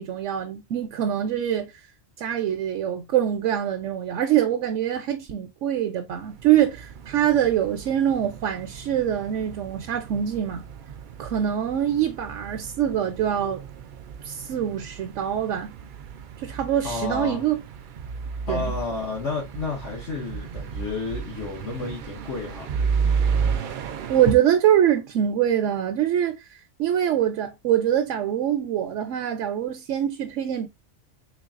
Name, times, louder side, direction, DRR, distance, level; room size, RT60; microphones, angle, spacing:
voice 1, 0.0-1.7 2.2-10.6 11.2-13.6 14.2-15.7 16.4-17.6 18.5-18.7 24.1-26.4 26.8-30.7, right 10 dB, 85° right, 1.0 m, -24 dB
sound 1, 6.1-24.3, right 6 dB, 60° right, 0.5 m, -32 dB
voice 2, 16.8-17.4 18.5-22.7, left 4 dB, 70° left, 1.6 m, -31 dB
3.9 x 3.5 x 2.4 m
omnidirectional pair, 1.2 m